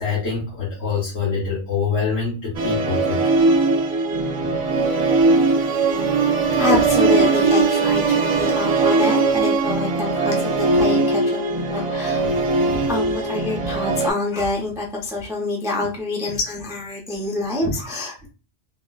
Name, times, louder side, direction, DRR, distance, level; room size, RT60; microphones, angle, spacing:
voice 1, 0.0-3.2 4.4-4.6 5.7-5.9, left 5 dB, 65° left, -7 dB, 1.2 m, -25 dB
Musical instrument, 2.5-14.1, right 3 dB, 50° right, 0.6 m, -20 dB
voice 2, 6.5-11.4 11.7-12.3 12.7-18.3, left 2 dB, 5° right, -2 dB, 0.5 m, -26 dB
3.7 x 2.1 x 2.3 m, 0.34 s
omnidirectional pair, 1.2 m